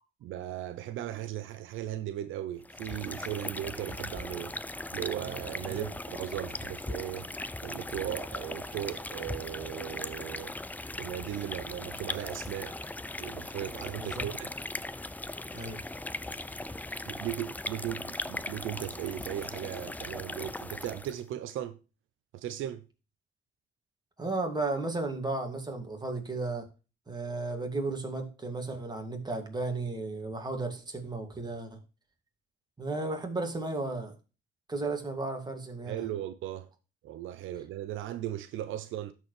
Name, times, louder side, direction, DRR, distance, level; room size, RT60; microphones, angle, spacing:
voice 1, 0.2-4.5 4.9-7.3 7.6-10.5 11.0-12.8 13.2-14.5 17.1-21.8 22.3-22.8 35.9-36.7 37.0-39.1, right 12 dB, 80° right, 0.6 m, -37 dB
sound 1, 2.6-21.2, left 2 dB, 10° left, 0.5 m, -39 dB
voice 2, 14.0-14.3 15.5-15.8 24.2-26.7 27.1-31.8 32.8-34.1 34.7-36.0, right 3 dB, 20° right, 2.2 m, -34 dB
12.5 x 4.6 x 3.2 m
cardioid pair, 90°, 20 cm